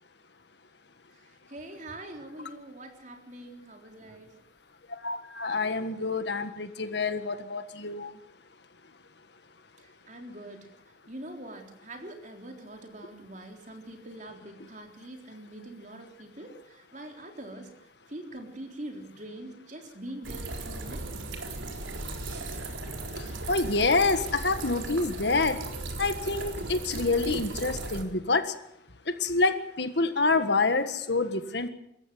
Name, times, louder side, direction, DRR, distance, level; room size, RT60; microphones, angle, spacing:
voice 1, 1.1-4.4 9.8-10.7 11.1-21.1, right 1 dB, 40° right, 3 dB, 3.8 m, -44 dB
voice 2, 5.0-8.2 23.2-25.6 26.0-28.5 29.1-31.7, left 3 dB, 60° left, 10 dB, 1.6 m, -27 dB
sound 1, 20.2-28.0, right 2 dB, 85° right, 4.0 m, -36 dB
26.5 x 14.5 x 7.9 m, 0.78 s
head